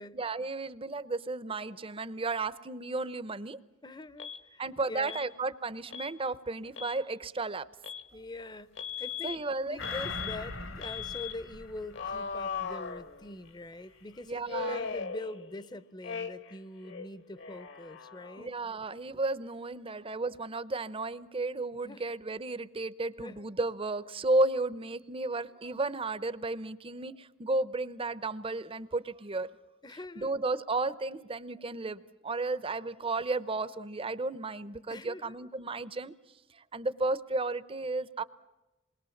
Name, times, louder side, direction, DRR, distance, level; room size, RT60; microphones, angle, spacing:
voice 1, 0.1-3.6 4.6-7.7 9.2-9.8 14.3-14.8 18.4-29.5 30.2-36.1 36.7-38.2, right 2 dB, 25° right, 15 dB, 0.8 m, -33 dB
voice 2, 3.8-5.3 8.1-8.7 9.0-9.4 9.7-18.5 21.8-22.2 23.2-23.5 29.8-30.4 34.9-35.4, left 2 dB, 20° left, 15 dB, 0.7 m, -44 dB
Alarm, 4.2-4.4 5.1-5.3 5.9-6.1 6.6-7.0 7.8-8.1 8.8-9.4 9.8-10.4 10.8-11.3 11.9-13.5 14.5-15.7 16.0-16.6 16.8-18.5, left 6 dB, 60° left, 1.4 m, -38 dB
sound 1, 9.8-12.7 13.1-13.2, left 3 dB, 80° left, 2.9 m, -41 dB
28.0 x 22.0 x 7.2 m, 1.0 s
head